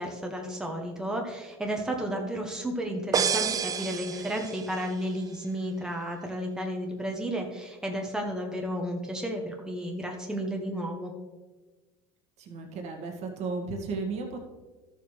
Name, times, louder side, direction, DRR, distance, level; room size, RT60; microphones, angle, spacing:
voice 1, 0.0-11.1, equal, 5° right, 1 dB, 1.2 m, -32 dB
sound 1, 3.1-4.9, right 7 dB, 25° right, 0.4 m, -29 dB
voice 2, 12.4-14.4, right 4 dB, 50° right, 2 dB, 1.9 m, -34 dB
13.0 x 7.0 x 3.3 m, 1.3 s
supercardioid pair, 105°, 14 cm